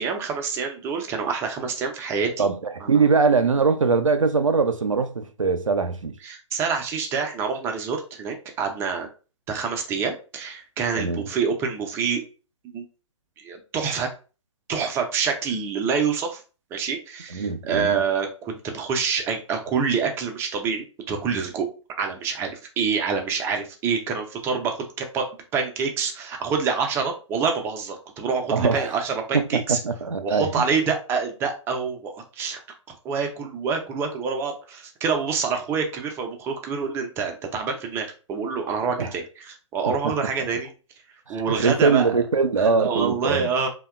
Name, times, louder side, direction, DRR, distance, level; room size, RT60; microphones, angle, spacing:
voice 1, 0.0-2.5 2.8-2.9 6.2-9.1 9.5-12.2 12.7-12.8 13.4-14.1 14.7-16.4 16.7-21.7 22.0-29.8 30.2-32.6 32.9-40.7 41.3-42.1 42.6-43.7, right 5 dB, 15° right, 0.4 m, -27 dB
voice 2, 2.4-6.2 10.9-11.2 17.3-18.0 28.5-28.9 29.3-30.6 39.0-39.1 39.9-40.1 41.3-43.5, right 4 dB, 90° right, 0.4 m, -22 dB
2.7 x 2.2 x 2.2 m
figure-of-eight pair, 125°, 16 cm